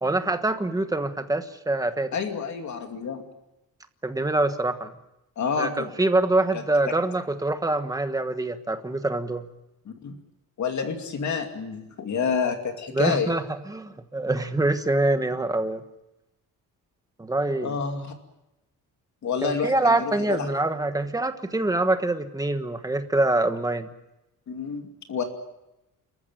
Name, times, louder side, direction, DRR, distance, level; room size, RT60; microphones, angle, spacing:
voice 1, 0.0-2.2 4.0-4.9 5.6-9.5 12.9-15.8 17.2-17.7 19.4-23.9, right 2 dB, 10° right, 8 dB, 1.3 m, -25 dB
voice 2, 2.1-3.2 5.4-5.9 6.5-6.6 10.0-10.2 10.6-13.3 17.6-18.1 19.2-20.5 24.5-25.2, left 6 dB, 55° left, 5 dB, 2.6 m, -28 dB
29.5 x 14.5 x 9.1 m, 0.94 s
wide cardioid pair, 170°, 35 cm